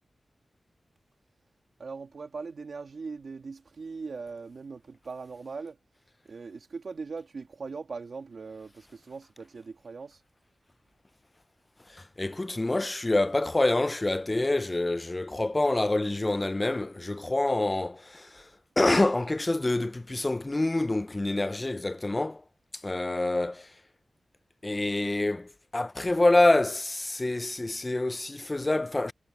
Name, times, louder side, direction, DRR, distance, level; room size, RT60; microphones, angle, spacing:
voice 1, 1.8-5.8 6.2-10.2, right 4 dB, 65° right, 2.3 m, -40 dB
voice 2, 11.9-18.5 18.8-22.4 22.7-23.7 24.6-29.1, left 2 dB, 25° left, 0.5 m, -26 dB
wide cardioid pair, 75°, 0 cm